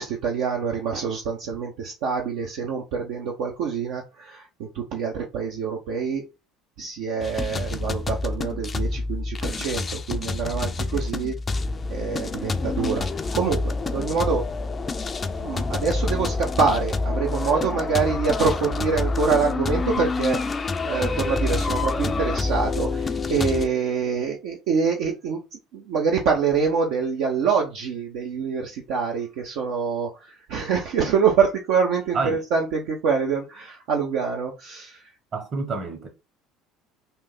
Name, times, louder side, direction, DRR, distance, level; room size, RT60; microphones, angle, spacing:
voice 1, 0.0-6.3 6.8-11.6 11.9-14.5 15.3-35.1, right 5 dB, 60° right, 0.6 m, -26 dB
sound 1, 7.2-23.7, left 3 dB, 30° left, 0.4 m, -27 dB
voice 2, 35.3-36.1, right 4 dB, 40° right, 1.1 m, -28 dB
3.6 x 2.6 x 4.1 m
figure-of-eight pair, 60°, 0 cm